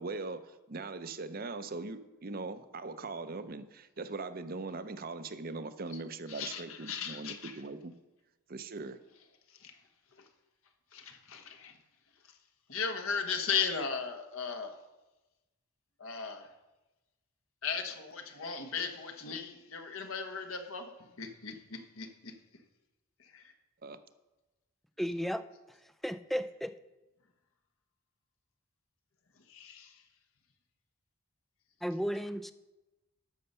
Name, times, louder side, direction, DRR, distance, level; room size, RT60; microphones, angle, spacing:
voice 1, 0.0-7.9 8.5-9.0 23.8-24.0, right 3 dB, 45° right, 12 dB, 0.6 m, -40 dB
voice 2, 6.3-7.5 9.6-9.7 10.9-11.8 12.7-14.7 16.0-16.5 17.6-22.3 23.2-23.5 29.5-30.0, left 6 dB, 70° left, 5 dB, 1.3 m, -37 dB
voice 3, 25.0-25.4 26.0-26.7 31.8-32.5, equal, ahead, 11 dB, 0.3 m, -33 dB
13.5 x 6.6 x 5.6 m, 1.1 s
head